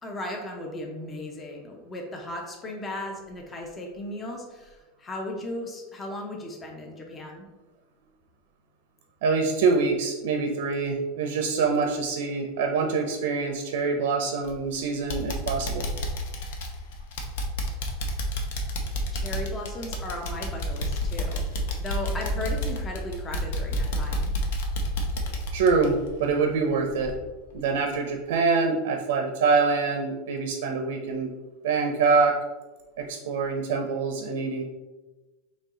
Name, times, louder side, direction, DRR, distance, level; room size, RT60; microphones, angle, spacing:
voice 1, 0.0-7.5 19.1-21.4 21.8-24.3, left 1 dB, 15° left, 1 dB, 0.5 m, -36 dB
voice 2, 9.2-15.9 25.5-27.2 27.5-31.3 31.6-32.4 33.0-34.6, right 4 dB, 80° right, 4 dB, 0.6 m, -25 dB
sound 1, 14.4-14.8 15.1-26.7 27.0-27.1 27.6-27.7, equal, 75° left, 0.7 m, -30 dB
4.3 x 3.0 x 3.6 m, 1.1 s
supercardioid pair, 160°, 0 cm